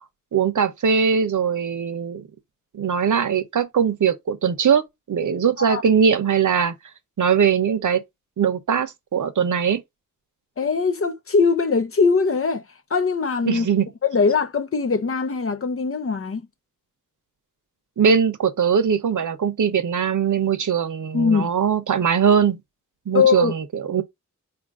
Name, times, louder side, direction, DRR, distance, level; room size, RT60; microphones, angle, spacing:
voice 1, 0.3-2.3 2.7-4.8 5.1-6.7 7.2-8.0 8.4-9.8 13.5-13.9 18.0-22.6 23.1-24.0, right 7 dB, 65° right, 0.8 m, -21 dB
voice 2, 10.6-12.6 12.9-13.7 14.1-16.5 21.1-21.5 23.1-23.5, left 5 dB, 40° left, 0.7 m, -21 dB
4.5 x 2.6 x 3.5 m
wide cardioid pair, 105°, 33 cm